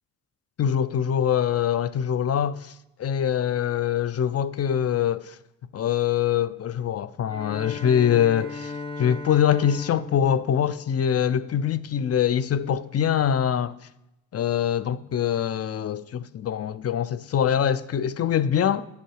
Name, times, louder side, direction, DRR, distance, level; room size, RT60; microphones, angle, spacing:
voice 1, 0.6-5.4 5.7-8.7 9.0-13.8 14.3-18.9, left 9 dB, 35° left, 0.6 m, -24 dB
Bowed string instrument, 7.2-11.7, left 3 dB, 15° left, 2.1 m, -38 dB
10.0 x 6.9 x 4.7 m
hypercardioid pair, 50°, 40 cm